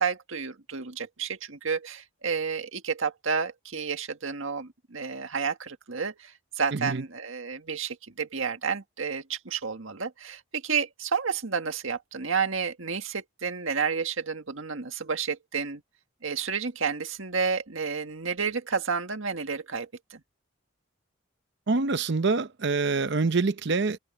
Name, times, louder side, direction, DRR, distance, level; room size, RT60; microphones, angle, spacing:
voice 1, 0.0-15.8 16.2-20.2, right 5 dB, 70° right, 1.8 m, -31 dB
voice 2, 6.7-7.0 21.7-24.0, right 4 dB, 55° right, 0.7 m, -25 dB
head